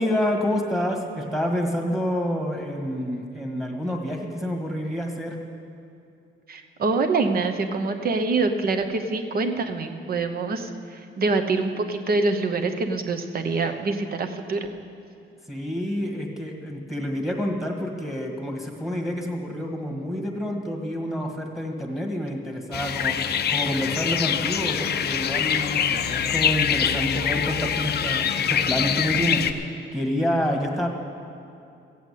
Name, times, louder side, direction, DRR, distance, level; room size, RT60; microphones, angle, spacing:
voice 1, 0.0-5.4 15.5-30.9, equal, ahead, 2 dB, 1.5 m, -28 dB
voice 2, 6.5-14.7, right 3 dB, 45° right, 6 dB, 0.9 m, -25 dB
sound 1, 22.7-29.5, left 8 dB, 50° left, 0.6 m, -24 dB
15.0 x 8.1 x 8.3 m, 2.6 s
wide cardioid pair, 165°, 21 cm